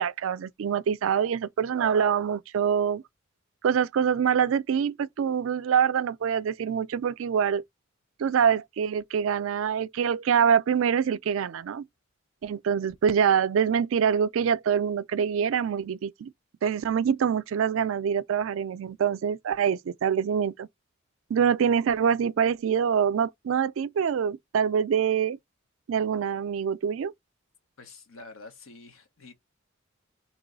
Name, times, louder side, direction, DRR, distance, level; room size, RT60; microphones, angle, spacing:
voice 1, 0.0-3.0 3.6-7.6 8.2-11.9 12.4-16.3 16.6-20.7 21.3-25.4 25.9-27.1, right 7 dB, 75° right, 0.3 m, -25 dB
voice 2, 27.8-29.3, left 3 dB, 85° left, 1.1 m, -47 dB
3.0 x 3.0 x 3.9 m
head